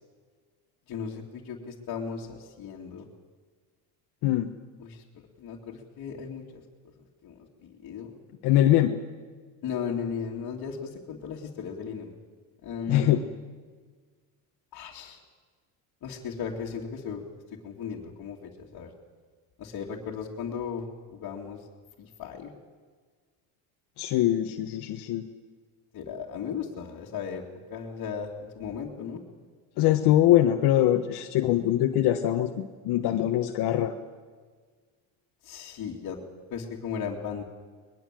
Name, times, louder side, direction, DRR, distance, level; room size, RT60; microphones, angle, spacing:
voice 1, 0.9-3.1 4.8-5.0 5.4-6.6 7.2-7.3 7.6-8.1 9.6-12.1 12.6-13.2 14.7-15.2 16.0-17.2 17.6-18.9 19.6-20.9 21.1-21.6 22.0-22.5 25.9-27.4 27.7-29.2 35.4-36.2 36.5-37.4, left 6 dB, 55° left, -4 dB, 2.7 m, -36 dB
voice 2, 8.4-8.9 12.9-13.2 24.0-25.3 29.8-33.9, left 13 dB, 70° left, 5 dB, 1.4 m, -23 dB
22.0 x 21.0 x 7.7 m, 1.5 s
cardioid pair, 120°, 40 cm